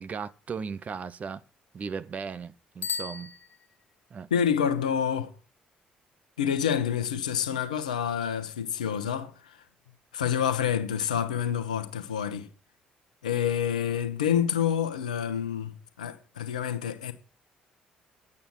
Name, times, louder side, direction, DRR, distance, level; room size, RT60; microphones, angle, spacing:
voice 1, 0.0-1.4 1.7-3.3 4.1-4.3, right 6 dB, 35° right, 0.9 m, -36 dB
Bicycle bell, 2.8-4.1, left 6 dB, 45° left, 1.6 m, -36 dB
voice 2, 4.3-5.3 6.4-9.6 10.1-12.5 13.2-17.1, left 8 dB, 75° left, 1.1 m, -28 dB
11.0 x 8.5 x 6.2 m
figure-of-eight pair, 45°, 4 cm